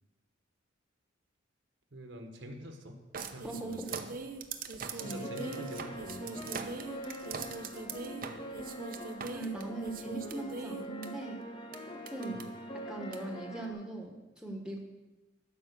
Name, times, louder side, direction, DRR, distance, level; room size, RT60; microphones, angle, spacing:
voice 1, 1.9-3.0 3.3-4.0 4.9-6.5 12.3-12.5, equal, 65° right, 4 dB, 1.3 m, -46 dB
sound 1, 3.1-11.1 11.7-11.8 12.1-12.4 13.1-13.2, right 4 dB, 45° right, 0.7 m, -41 dB
voice 2, 3.4-3.9 5.0-5.2 9.3-11.4 12.1-12.5 12.7-14.8, right 2 dB, 5° right, 1 dB, 1.2 m, -40 dB
sound 2, 5.0-13.7, equal, 25° left, 0.9 m, -43 dB
12.5 x 5.4 x 6.8 m, 1.1 s
head